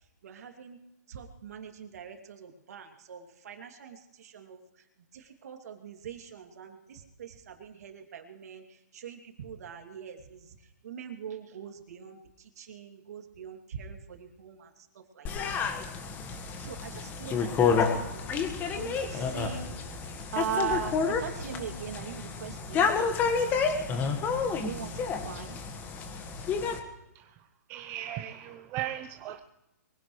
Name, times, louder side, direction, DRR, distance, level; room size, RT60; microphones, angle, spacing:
voice 1, 0.2-0.8 1.1-4.6 5.1-10.6 10.8-15.4 16.6-18.3 18.7-19.7 20.3-22.9 24.5-25.6, right 8 dB, 65° right, 2.6 m, -41 dB
sound 1, 15.3-26.8, left 5 dB, 20° left, 1.6 m, -30 dB
voice 2, 27.7-29.4, right 12 dB, 25° right, 0.7 m, -37 dB
23.5 x 16.5 x 3.2 m
hypercardioid pair, 150°, 9 cm